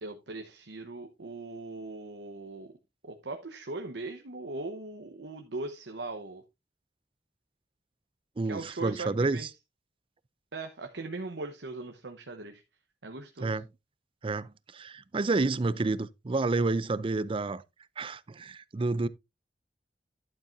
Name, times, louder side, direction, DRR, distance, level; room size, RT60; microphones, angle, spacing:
voice 1, 0.0-2.7 3.0-6.4 8.4-9.5 10.5-12.6 13.0-13.6, right 3 dB, 85° right, 1.0 m, -39 dB
voice 2, 8.4-9.5 13.4-13.6 14.2-17.6 18.0-19.1, right 3 dB, 30° right, 0.5 m, -29 dB
11.5 x 7.5 x 2.6 m
head